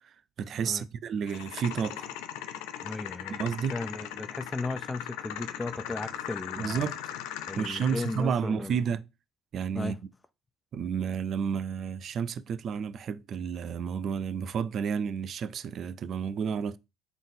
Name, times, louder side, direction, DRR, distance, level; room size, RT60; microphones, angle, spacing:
voice 1, 0.4-2.1 3.3-3.8 6.6-7.0 7.6-9.0 9.5-10.0 10.7-16.8, right 7 dB, 50° right, 0.4 m, -31 dB
sound 1, 1.3-8.3, left 11 dB, 80° left, 0.4 m, -39 dB
voice 2, 2.8-3.4 3.7-6.9 7.5-8.8 9.7-10.1, left 3 dB, 15° left, 0.4 m, -36 dB
3.9 x 3.9 x 2.6 m
supercardioid pair, 85°, 0 cm